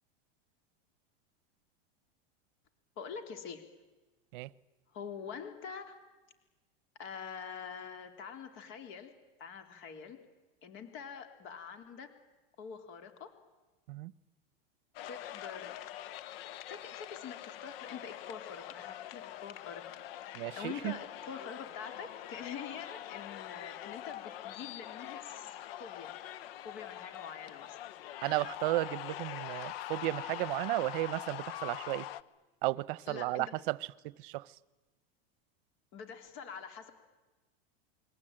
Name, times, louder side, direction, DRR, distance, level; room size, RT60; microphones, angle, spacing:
voice 1, 3.0-3.7 4.9-6.0 7.0-9.1 9.4-10.2 10.6-12.1 12.6-13.3 15.1-15.8 16.7-20.0 20.3-26.1 26.6-27.8 33.1-33.6 35.9-36.9, left 6 dB, 40° left, 3.5 m, -45 dB
sound 1, 14.9-32.2, left 13 dB, 70° left, 1.1 m, -44 dB
voice 2, 20.3-21.0 28.2-32.1 32.6-33.8 34.0-34.5, right 19 dB, 55° right, 0.9 m, -34 dB
28.5 x 22.0 x 8.9 m
supercardioid pair, 150°, 30 cm